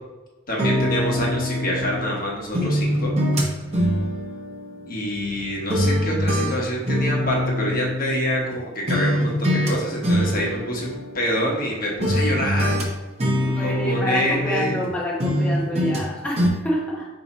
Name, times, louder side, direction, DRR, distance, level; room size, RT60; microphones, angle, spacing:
voice 1, 0.5-3.1 4.9-12.8 13.6-14.8, equal, 50° left, -2 dB, 1.1 m, -26 dB
sound 1, 0.6-2.2 2.5-5.4 5.7-8.6 8.9-9.7 10.0-11.7 12.0-14.9 15.2-16.1 16.4-16.5, equal, 35° right, 0.9 m, -24 dB
voice 2, 13.4-17.1, equal, 5° left, -5 dB, 0.7 m, -27 dB
4.7 x 2.8 x 4.1 m, 1.2 s
head